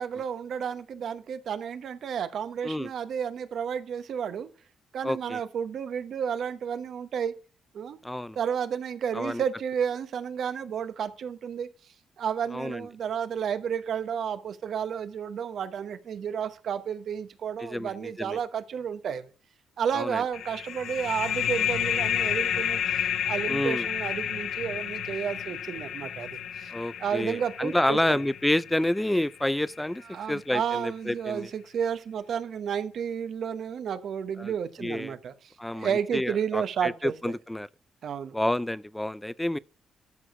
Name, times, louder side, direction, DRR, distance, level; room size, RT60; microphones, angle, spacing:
voice 1, 0.0-4.5 4.9-7.4 7.7-8.0 8.3-11.7 12.2-19.3 19.8-26.7 27.0-28.2 30.1-37.1 38.0-38.4, right 7 dB, 65° right, 1.0 m, -31 dB
voice 2, 5.0-5.4 8.0-8.4 9.1-9.4 12.5-12.9 17.6-18.4 19.9-20.2 23.5-23.9 26.7-31.5 34.4-34.5 34.8-35.2 35.6-37.7 38.3-39.6, left 1 dB, 10° left, 0.4 m, -29 dB
sound 1, 20.3-29.6, left 9 dB, 70° left, 0.7 m, -31 dB
12.5 x 4.9 x 4.9 m
supercardioid pair, 70°, 0 cm